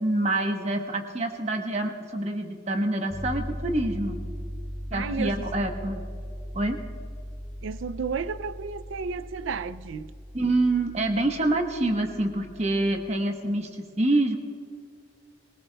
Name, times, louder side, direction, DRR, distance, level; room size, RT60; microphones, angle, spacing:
voice 1, 0.0-4.2 4.9-6.1 6.5-6.8 10.3-14.4, right 2 dB, 35° right, 1.1 m, -26 dB
sound 1, 3.1-13.2, equal, 5° right, 1.7 m, -39 dB
voice 2, 4.9-5.5 7.6-10.1, right 5 dB, 85° right, 0.4 m, -32 dB
22.0 x 19.0 x 2.3 m
head